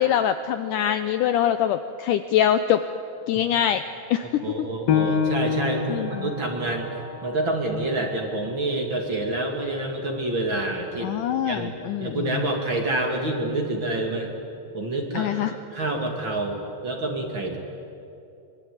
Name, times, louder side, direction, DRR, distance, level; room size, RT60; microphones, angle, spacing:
voice 1, 0.0-2.8 3.3-3.8 4.1-4.4 5.9-6.3 11.0-12.4 15.1-15.6, left 10 dB, 90° left, 10 dB, 1.8 m, -24 dB
voice 2, 4.4-6.9 7.2-11.1 11.4-11.7 12.0-14.3 14.7-17.6, right 2 dB, 35° right, 2 dB, 2.5 m, -27 dB
Piano, 4.9-10.1 10.5-10.6 11.2-11.7, left 6 dB, 65° left, 3.4 m, -29 dB
24.5 x 23.0 x 9.5 m, 2.8 s
omnidirectional pair, 4.6 m